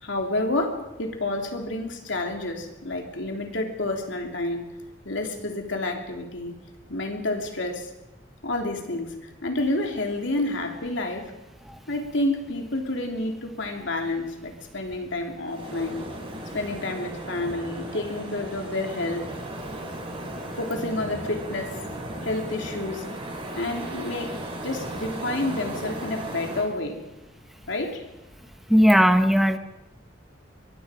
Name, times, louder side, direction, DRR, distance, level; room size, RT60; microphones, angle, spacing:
voice 1, 0.0-4.6 5.0-6.5 6.9-7.9 8.4-11.3 11.9-16.0 16.5-19.2 20.5-21.8 22.2-23.1 23.5-24.3 24.6-27.0 27.7-28.0, left 2 dB, 70° left, 3 dB, 3.2 m, -29 dB
sound 1, 15.5-26.6, right 1 dB, 30° right, 5.0 m, -36 dB
voice 2, 28.7-29.6, equal, ahead, 7 dB, 1.1 m, -17 dB
24.5 x 23.5 x 5.1 m, 0.97 s
head